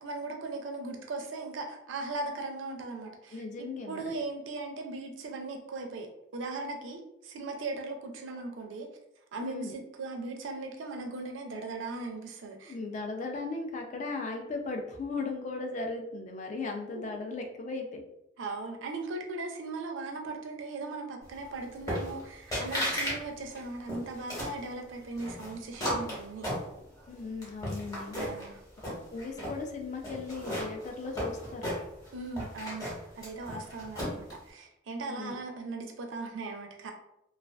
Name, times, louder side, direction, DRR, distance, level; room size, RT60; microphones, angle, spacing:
voice 1, 0.0-6.1 6.3-8.9 9.3-12.7 16.9-17.1 18.4-26.5 28.1-28.6 32.1-32.9 33.2-36.9, right 3 dB, 80° right, 3 dB, 0.4 m, -38 dB
voice 2, 3.3-4.1 9.4-9.7 12.6-18.0 27.1-28.2 29.1-31.8 35.1-35.4, left 3 dB, 40° left, 3 dB, 0.3 m, -37 dB
sound 1, 21.9-22.2 22.5-23.2 23.5-24.6 25.2-27.0 27.4-28.5 28.8-29.6 30.0-32.1 32.4-34.3, equal, 20° left, 0.9 m, -34 dB
2.3 x 2.3 x 2.2 m, 0.83 s
head